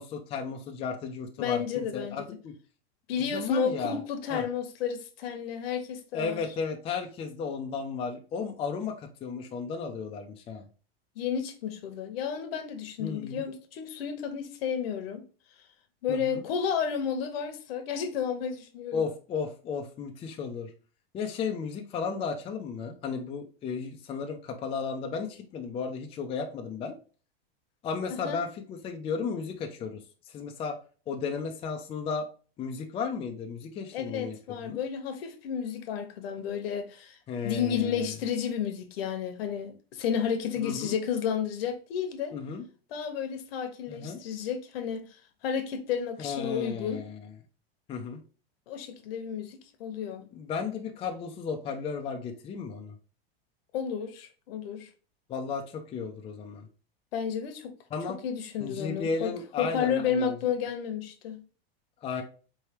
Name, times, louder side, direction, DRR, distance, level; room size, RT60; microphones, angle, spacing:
voice 1, 0.0-2.5 3.2-4.0 4.3-4.4 6.1-10.6 13.0-13.4 16.1-16.4 18.9-20.7 21.1-26.9 27.8-30.0 30.3-30.8 31.1-32.3 32.6-34.4 34.6-34.8 37.3-38.1 40.6-40.9 42.3-42.6 43.9-44.2 46.2-47.3 47.9-48.2 50.3-53.0 55.3-56.7 57.9-58.2 58.6-60.4 62.0-62.2, left 5 dB, 20° left, 0.4 m, -34 dB
voice 2, 1.4-2.2 3.1-6.4 11.2-15.2 16.0-19.0 28.1-28.4 33.9-37.2 37.4-42.3 42.9-45.1 45.4-47.0 48.7-50.2 53.7-54.9 57.1-57.7 58.2-59.3 59.6-61.4, left 7 dB, 70° left, 1.0 m, -32 dB
4.5 x 3.3 x 2.9 m
supercardioid pair, 140°, 30 cm